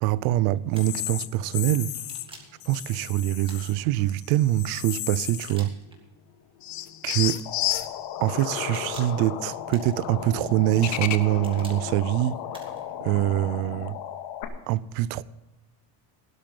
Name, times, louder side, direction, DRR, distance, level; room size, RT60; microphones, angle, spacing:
voice 1, 0.0-1.9 2.7-5.8 7.0-7.4 8.2-12.4 13.0-14.0 14.7-15.2, right 15 dB, 50° right, 0.5 m, -24 dB
sound 1, 0.7-2.3 2.6-3.7 4.1-5.7 6.0-6.1 6.6-14.0, left 13 dB, 35° left, 0.7 m, -35 dB
sound 2, 0.8-1.1 1.9-2.6 3.4-4.1 5.2-6.0 7.1-7.5 8.5-9.2 9.7-10.3 11.1-11.8 12.5-12.9, right 2 dB, 10° right, 2.1 m, -48 dB
sound 3, 7.5-14.5, left 10 dB, 70° left, 2.2 m, -36 dB
17.5 x 12.0 x 3.8 m
cardioid pair, 170°, 49 cm